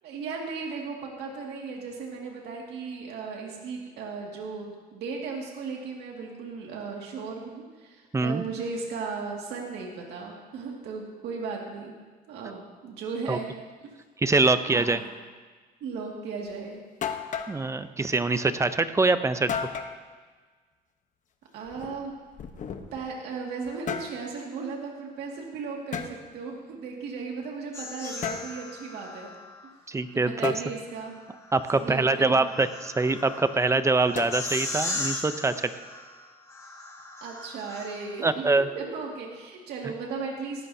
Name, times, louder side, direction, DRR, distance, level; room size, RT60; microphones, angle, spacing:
voice 1, 0.0-12.0 12.3-13.5 14.7-15.1 15.8-16.8 21.5-22.1 22.9-29.3 30.1-31.2 31.7-32.4 37.2-38.5 38.7-40.7, right 4 dB, 75° right, -1 dB, 2.2 m, -36 dB
voice 2, 14.2-15.0 17.5-19.5 29.9-30.5 31.5-35.7 38.2-38.7, right 3 dB, 15° right, 11 dB, 0.7 m, -24 dB
sound 1, 16.5-16.6 17.0-17.6 19.5-20.0 21.6-23.1 23.6-24.2 25.9-26.1 28.2-28.5 30.4-30.7 34.1-34.7, left 7 dB, 50° left, 1.1 m, -33 dB
sound 2, 27.7-29.7 31.1-38.3, left 2 dB, 20° left, 1.9 m, -38 dB
18.5 x 15.0 x 2.8 m, 1.4 s
cardioid pair, 110°, 17 cm